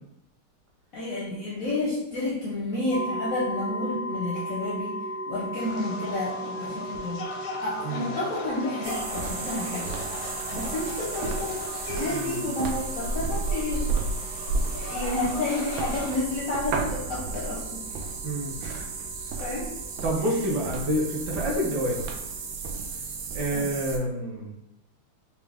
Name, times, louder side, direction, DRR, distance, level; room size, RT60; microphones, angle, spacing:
voice 1, 0.9-4.9 5.3-9.9 10.5-11.6 11.9-13.8 14.7-17.8 18.6-18.8 19.4-19.7 23.5-23.7, left 2 dB, 65° left, -6 dB, 0.8 m, -30 dB
sound 1, 2.9-22.5, equal, 40° left, 0.5 m, -39 dB
sound 2, 5.5-16.2, left 3 dB, 85° left, 1.5 m, -39 dB
sound 3, 8.8-24.0, right 4 dB, 85° right, 1.5 m, -32 dB
voice 2, 12.1-12.4 18.2-18.6 20.0-22.0 23.3-24.5, equal, 60° right, -2 dB, 1.2 m, -28 dB
4.6 x 2.1 x 3.3 m, 0.84 s
omnidirectional pair, 2.3 m